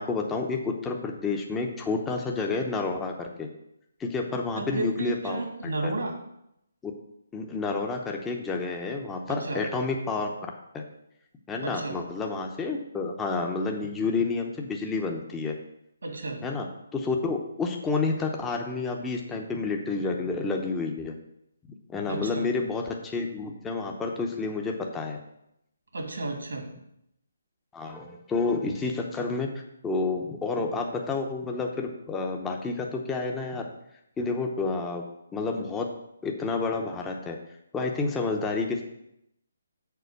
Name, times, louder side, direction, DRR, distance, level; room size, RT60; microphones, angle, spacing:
voice 1, 0.0-3.5 4.0-5.9 7.3-10.3 10.7-10.8 11.5-15.5 16.4-16.7 16.9-21.1 21.9-25.2 27.7-29.5 29.8-33.7 34.2-35.0 35.3-35.9 36.2-37.4 37.7-38.8, left 3 dB, 10° left, 1 dB, 0.8 m, -29 dB
voice 2, 4.6-6.1 9.3-9.6 11.6-12.0 16.0-16.4 22.1-22.4 25.9-26.7, right 2 dB, 75° right, 3 dB, 2.0 m, -32 dB
6.8 x 4.2 x 6.7 m, 0.80 s
figure-of-eight pair, 150°, 0 cm